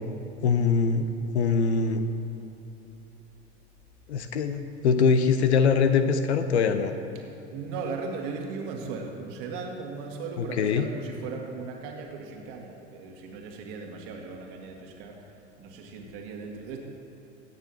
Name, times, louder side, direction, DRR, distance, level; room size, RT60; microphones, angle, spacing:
voice 1, 0.4-1.1 1.3-2.0 4.1-6.9 10.4-10.9, left 5 dB, 65° left, 8 dB, 0.8 m, -23 dB
voice 2, 7.2-15.3 15.6-16.8, right 4 dB, 50° right, 1 dB, 2.0 m, -37 dB
23.0 x 9.0 x 3.0 m, 3.0 s
figure-of-eight pair, 75°, 36 cm